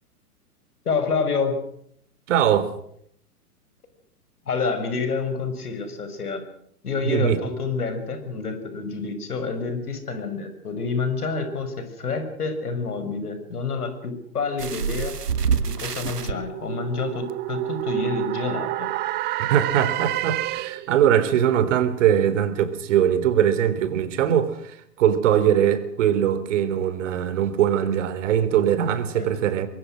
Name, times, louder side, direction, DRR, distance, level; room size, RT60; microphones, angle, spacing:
voice 1, 0.8-1.6 4.5-6.4 6.8-15.1 15.6-18.9 29.1-29.3, left 4 dB, 70° left, 6.4 m, -28 dB
voice 2, 2.3-2.7 7.0-7.4 19.4-29.7, right 9 dB, 50° right, 3.6 m, -21 dB
sound 1, 14.6-16.3 17.3-17.4 17.8-17.9, right 6 dB, 80° right, 1.4 m, -26 dB
sound 2, 14.8-21.0, right 16 dB, 20° right, 1.0 m, -30 dB
24.5 x 22.0 x 6.4 m
figure-of-eight pair, 115°, 46 cm